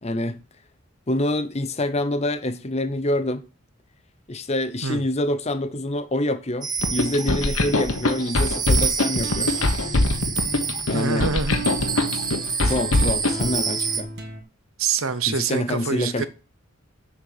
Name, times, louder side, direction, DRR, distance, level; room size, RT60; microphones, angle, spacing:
voice 1, 0.0-0.4 1.1-3.5 4.3-9.5 10.9-11.3 12.6-14.1 15.3-16.3, left 1 dB, 30° left, 0.8 m, -26 dB
sound 1, 6.6-14.0, right 6 dB, 20° right, 0.8 m, -29 dB
sound 2, 6.8-13.5, left 2 dB, 80° left, 1.4 m, -22 dB
sound 3, 9.1-14.4, right 2 dB, 55° right, 2.0 m, -36 dB
voice 2, 10.9-11.6 14.8-16.3, right 5 dB, 85° right, 0.9 m, -25 dB
7.7 x 5.8 x 6.7 m
head